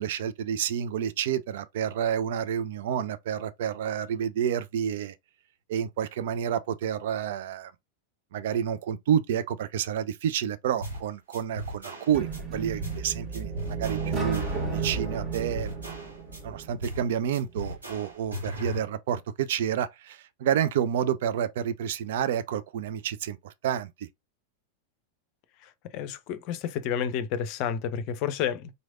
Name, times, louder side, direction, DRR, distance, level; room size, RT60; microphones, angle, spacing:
voice 1, 0.0-5.1 5.7-7.7 8.3-14.5 14.7-15.7 16.4-24.1, right 9 dB, 55° right, 0.3 m, -29 dB
sound 1, 10.8-11.1 11.3-12.4 12.8-13.1 13.3-15.1 15.3-16.4 16.8-17.1 17.3-18.8, equal, 75° right, 1.4 m, -37 dB
sound 2, 12.1-17.1, right 4 dB, 30° right, 1.2 m, -33 dB
voice 2, 25.6-28.7, left 8 dB, 40° left, 0.5 m, -30 dB
3.9 x 3.1 x 2.5 m
figure-of-eight pair, 90°, 0 cm